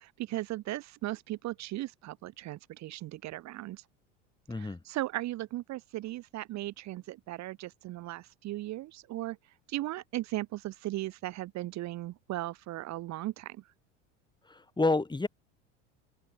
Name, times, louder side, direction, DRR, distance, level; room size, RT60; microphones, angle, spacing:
voice 1, 0.0-3.8 4.5-9.4 9.7-13.6, right 16 dB, 50° right, 1.3 m, -37 dB
voice 2, 4.5-4.8 14.5-15.3, left 3 dB, 10° left, 3.4 m, -29 dB
open air
hypercardioid pair, 80°, 36 cm